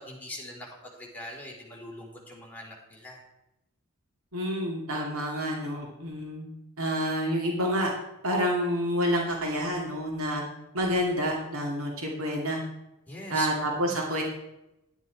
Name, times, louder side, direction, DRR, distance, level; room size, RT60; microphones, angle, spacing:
voice 1, 0.0-3.2 13.1-14.0, left 1 dB, 10° left, -3 dB, 3.2 m, -42 dB
voice 2, 4.3-6.5 6.8-7.9 8.2-10.4 10.7-12.6 13.3-14.2, equal, 75° right, -1 dB, 2.3 m, -28 dB
11.5 x 9.3 x 4.6 m, 0.92 s
head